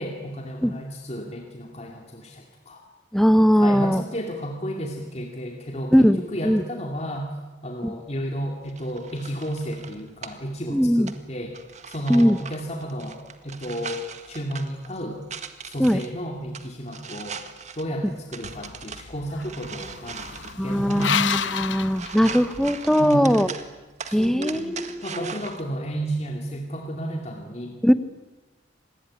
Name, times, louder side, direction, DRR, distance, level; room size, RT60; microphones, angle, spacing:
voice 1, 0.0-2.8 3.6-7.3 7.6-11.5 11.9-13.2 13.4-15.2 15.6-17.4 17.7-21.8 22.9-23.4 24.1-27.8, equal, 35° left, 2 dB, 2.5 m, -32 dB
voice 2, 3.1-4.0 5.9-6.6 7.8-7.9 10.7-11.1 12.1-12.4 15.8-16.0 20.6-23.5 24.1-25.3 27.8-27.9, equal, ahead, 12 dB, 0.8 m, -20 dB
sound 1, 8.6-25.6, right 6 dB, 40° right, 1.8 m, -41 dB
sound 2, 18.4-22.8, left 7 dB, 85° left, 1.0 m, -31 dB
26.5 x 20.5 x 9.8 m, 1.2 s
head